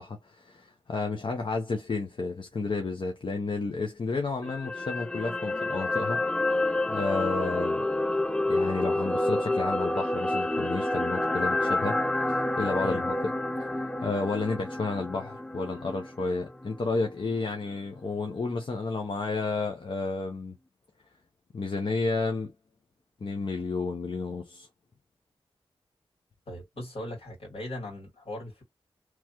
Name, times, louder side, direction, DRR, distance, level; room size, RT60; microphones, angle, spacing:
voice 1, 0.0-6.2 6.9-7.8 8.5-12.0 12.3-13.3 13.6-13.7 14.0-20.6 21.5-22.5 23.2-24.7, left 3 dB, 60° left, 0.7 m, -31 dB
sound 1, 4.4-16.7 17.1-17.2, left 1 dB, 10° left, 0.3 m, -29 dB
voice 2, 26.5-28.6, left 1 dB, 75° left, 2.1 m, -39 dB
3.1 x 2.4 x 2.8 m
cardioid pair, 50°, 10 cm